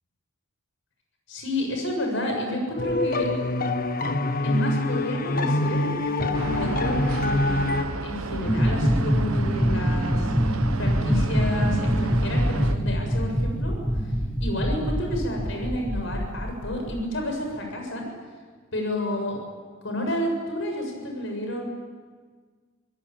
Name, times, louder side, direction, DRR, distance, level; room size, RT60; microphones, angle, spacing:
voice 1, 1.3-3.3 4.4-7.7 8.0-13.7 14.4-18.1 18.7-19.4 19.8-21.7, left 1 dB, 65° left, 2 dB, 7.2 m, -30 dB
sound 1, 2.8-7.8, left 2 dB, 45° left, 1.3 m, -25 dB
sound 2, 6.3-12.7, right 3 dB, 90° right, 1.1 m, -33 dB
sound 3, 8.5-17.0, equal, 5° left, 1.3 m, -24 dB
26.0 x 18.0 x 9.0 m, 1.5 s
head